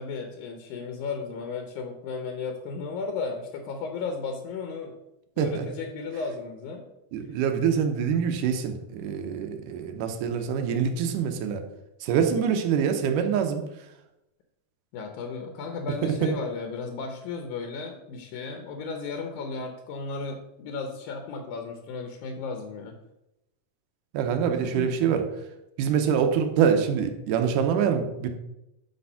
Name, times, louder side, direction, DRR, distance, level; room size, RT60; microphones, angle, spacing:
voice 1, 0.0-4.9 5.4-6.8 14.9-23.0 24.6-25.0, left 4 dB, 80° left, 4 dB, 2.2 m, -34 dB
voice 2, 5.4-5.7 7.1-11.6 12.0-13.6 16.0-16.3 24.1-25.3 25.8-28.3, right 7 dB, 85° right, 6 dB, 2.4 m, -25 dB
10.0 x 3.4 x 5.6 m, 0.90 s
omnidirectional pair, 3.6 m